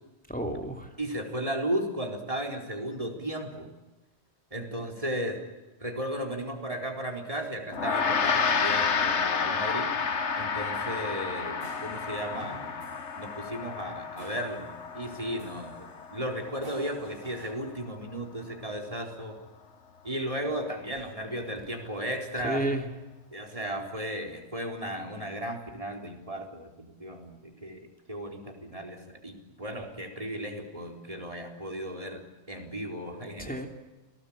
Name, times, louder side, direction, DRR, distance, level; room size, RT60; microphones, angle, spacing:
voice 1, 0.3-0.9 22.4-22.9 33.4-33.7, right 1 dB, 5° left, 3 dB, 3.0 m, -31 dB
voice 2, 1.0-3.7 4.5-5.4 5.8-9.9 10.4-12.7 13.2-19.4 20.0-22.6 23.3-27.8 28.1-32.2 32.5-33.7, equal, 30° right, 2 dB, 4.3 m, -35 dB
Gong, 7.7-17.3, left 5 dB, 80° left, 1.6 m, -30 dB
sound 1, 11.4-15.1 15.4-17.5, right 1 dB, 55° right, 5.9 m, -50 dB
29.0 x 19.0 x 8.8 m, 1.1 s
omnidirectional pair, 1.2 m